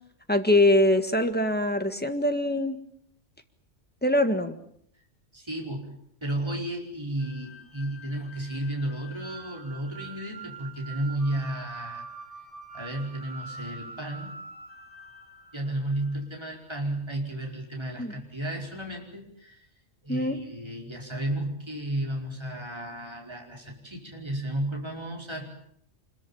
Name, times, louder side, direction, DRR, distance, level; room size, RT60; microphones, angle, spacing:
voice 1, 0.3-2.8 4.0-4.6 18.0-18.2 20.1-20.4, left 1 dB, 10° left, 7 dB, 1.8 m, -23 dB
voice 2, 5.3-5.9 6.2-12.1 12.7-14.3 15.5-19.6 20.0-25.5, right 1 dB, 20° right, 0 dB, 5.1 m, -33 dB
sound 1, 7.2-16.4, right 3 dB, 45° right, 4.0 m, -45 dB
26.0 x 22.0 x 7.2 m, 0.68 s
omnidirectional pair, 1.3 m